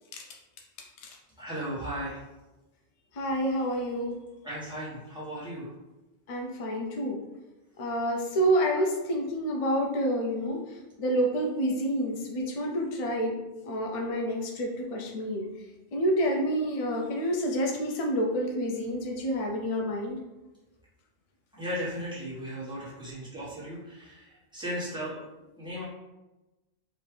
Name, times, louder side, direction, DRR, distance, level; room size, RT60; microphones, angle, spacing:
voice 1, 1.4-2.3 4.4-5.7 21.5-25.2 25.6-25.8, equal, 5° right, -10 dB, 1.2 m, -36 dB
voice 2, 3.1-4.2 6.3-7.2 7.8-13.3 13.7-15.4 15.9-20.2, equal, 55° left, 0 dB, 0.4 m, -28 dB
3.1 x 2.6 x 3.3 m, 1.0 s
omnidirectional pair, 1.1 m